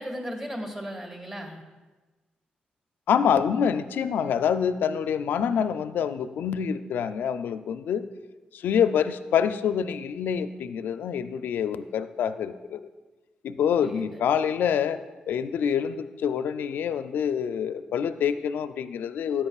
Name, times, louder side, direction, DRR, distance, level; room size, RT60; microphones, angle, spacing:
voice 1, 0.0-1.6 13.8-14.2, equal, 15° right, 3 dB, 2.0 m, -36 dB
voice 2, 3.1-8.0 8.5-12.8 13.4-15.0 15.3-19.5, left 8 dB, 80° left, 11 dB, 0.4 m, -26 dB
13.0 x 8.6 x 2.4 m, 1.2 s
supercardioid pair, 55°, 3 cm